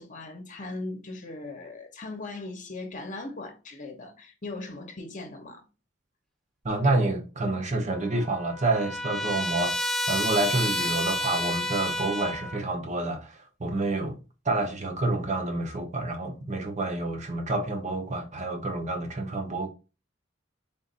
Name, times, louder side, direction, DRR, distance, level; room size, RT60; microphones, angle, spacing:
voice 1, 0.0-5.6, left 2 dB, 40° left, 0.9 m, -39 dB
voice 2, 6.6-14.2 14.4-19.7, right 2 dB, 35° right, 0.8 m, -28 dB
Trumpet, 7.9-12.6, left 1 dB, ahead, 0.3 m, -30 dB
3.7 x 2.5 x 3.9 m
head